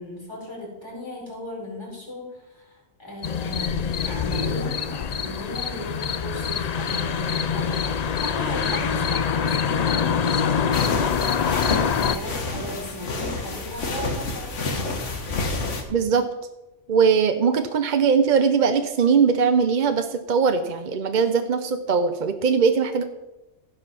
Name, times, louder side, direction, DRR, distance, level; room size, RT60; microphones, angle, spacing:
voice 1, 0.0-14.9, left 1 dB, 20° left, -4 dB, 4.5 m, -37 dB
sound 1, 3.2-12.2, left 7 dB, 50° left, 0.5 m, -25 dB
sound 2, 10.7-15.8, left 3 dB, 85° left, 1.7 m, -29 dB
voice 2, 15.9-16.3 16.9-23.0, right 6 dB, 50° right, 8 dB, 0.7 m, -20 dB
15.5 x 5.3 x 5.9 m, 0.98 s
omnidirectional pair, 1.2 m